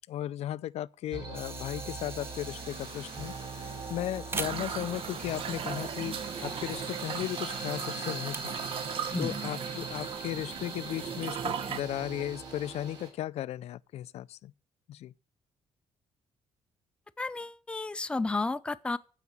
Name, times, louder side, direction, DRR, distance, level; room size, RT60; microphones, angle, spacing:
voice 1, 0.1-8.9 9.2-14.5 14.9-15.1, left 13 dB, 70° left, 0.4 m, -36 dB
sound 1, 1.1-13.1, right 4 dB, 40° right, 7.2 m, -41 dB
sound 2, 1.3-9.1, right 3 dB, 20° right, 0.9 m, -45 dB
sound 3, 4.3-11.8, right 7 dB, 55° right, 0.9 m, -38 dB
voice 2, 17.2-19.0, left 3 dB, 10° left, 0.5 m, -32 dB
14.5 x 5.0 x 7.0 m
cardioid pair, 135°, 11 cm